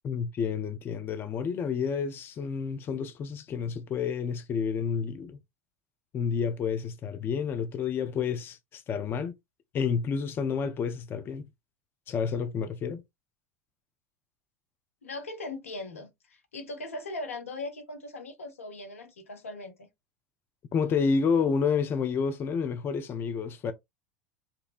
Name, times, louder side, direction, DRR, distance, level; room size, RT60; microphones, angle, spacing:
voice 1, 0.0-5.4 6.1-9.3 9.7-11.5 12.1-13.0 20.7-23.7, left 6 dB, 30° left, 0.4 m, -29 dB
voice 2, 15.0-19.9, left 2 dB, 80° left, 0.5 m, -39 dB
2.7 x 2.0 x 2.4 m
figure-of-eight pair, 80°, 7 cm